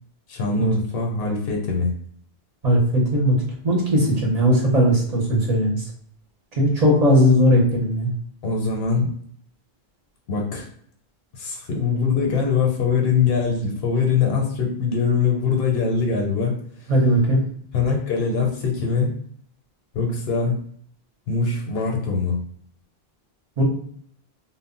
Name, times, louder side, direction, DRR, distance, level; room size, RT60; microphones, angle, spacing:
voice 1, 0.3-1.9 8.4-9.1 10.3-10.7 11.3-16.5 17.7-19.1 19.9-20.6 21.3-22.4, left 5 dB, 75° left, 0 dB, 0.8 m, -22 dB
voice 2, 2.6-3.4 3.6-5.9 6.6-8.1 16.9-17.4 23.6-23.7, equal, 45° right, -3 dB, 0.7 m, -18 dB
2.1 x 2.0 x 3.7 m, 0.62 s
omnidirectional pair, 1.0 m